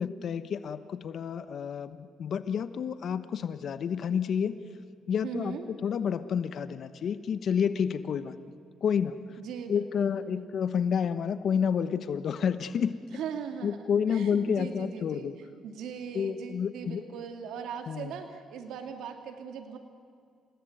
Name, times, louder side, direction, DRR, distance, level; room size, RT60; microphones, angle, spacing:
voice 1, 0.0-4.6 5.1-8.5 8.8-9.2 9.7-12.9 13.6-15.3 16.1-17.0 17.9-18.1, left 7 dB, 60° left, 12 dB, 1.1 m, -29 dB
voice 2, 5.2-5.7 9.4-10.5 13.1-13.8 14.1-15.3 15.6-19.8, right 7 dB, 85° right, 5 dB, 2.3 m, -39 dB
29.0 x 18.5 x 9.4 m, 2.3 s
cardioid pair, 90°, 0 cm